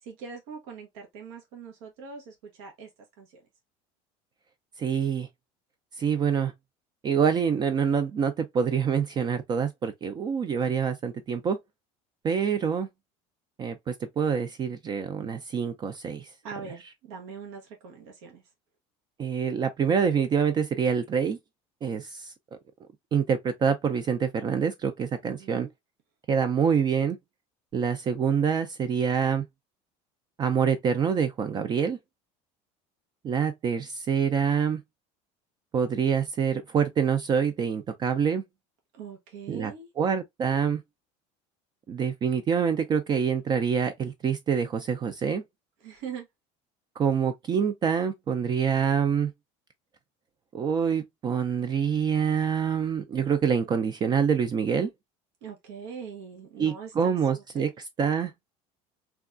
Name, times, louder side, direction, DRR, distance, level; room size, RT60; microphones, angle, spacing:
voice 1, 0.0-2.9 3.2-3.4 16.4-18.4 25.2-25.7 38.9-39.9 45.8-46.3 55.4-57.7, right 6 dB, 85° right, 0.9 m, -42 dB
voice 2, 4.8-5.3 6.0-6.5 7.0-11.6 12.2-12.9 13.6-16.3 19.2-21.4 21.8-22.3 23.1-25.7 26.3-27.2 27.7-29.4 30.4-32.0 33.2-34.8 35.7-38.4 39.5-39.7 40.0-40.8 41.9-45.4 47.0-49.3 50.5-54.9 56.6-57.7 58.0-58.3, right 7 dB, 30° right, 0.4 m, -26 dB
3.4 x 2.3 x 2.4 m
cardioid pair, 130°, 15 cm